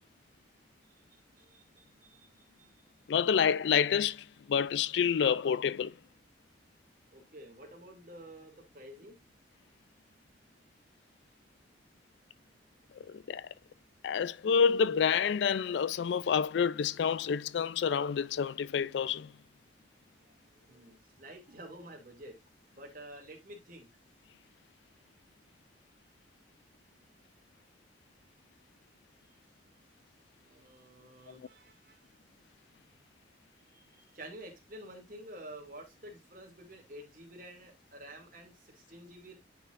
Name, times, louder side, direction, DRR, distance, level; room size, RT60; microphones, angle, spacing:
voice 1, 1.4-2.7 7.1-9.2 20.2-22.3 22.7-23.9 30.4-32.0 33.7-39.3, right 1 dB, 45° right, 2.4 m, -50 dB
voice 2, 3.1-5.9 13.1-13.4 14.0-19.3, left 7 dB, 70° left, 0.3 m, -28 dB
10.0 x 4.7 x 2.5 m
head